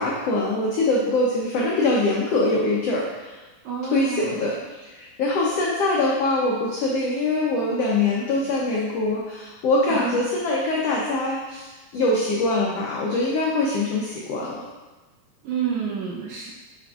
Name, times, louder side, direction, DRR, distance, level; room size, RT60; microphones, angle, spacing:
voice 1, 0.0-3.3 3.9-4.5 4.9-14.7, left 2 dB, 90° left, -4 dB, 1.3 m, -23 dB
voice 2, 3.6-4.6 9.9-10.1 15.4-16.5, right 6 dB, 75° right, -3 dB, 2.0 m, -29 dB
7.1 x 6.0 x 2.4 m, 1.2 s
omnidirectional pair, 3.9 m